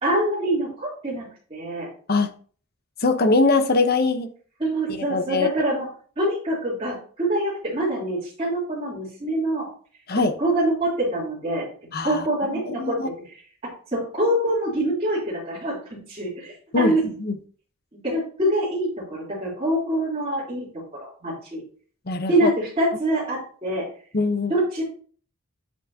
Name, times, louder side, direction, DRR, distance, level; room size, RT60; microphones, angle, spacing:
voice 1, 0.0-1.9 4.6-5.9 6.2-9.7 10.1-11.7 12.0-13.0 13.9-17.0 17.9-20.7 21.0-21.6 22.3-23.9 24.5-24.8, right 1 dB, 25° right, -9 dB, 3.4 m, -25 dB
voice 2, 3.0-4.3 5.0-5.5 10.1-10.3 11.9-12.2 12.8-13.1 16.7-17.3 22.1-22.5 24.1-24.5, left 3 dB, 45° left, 8 dB, 0.9 m, -22 dB
8.5 x 8.4 x 2.8 m, 0.43 s
head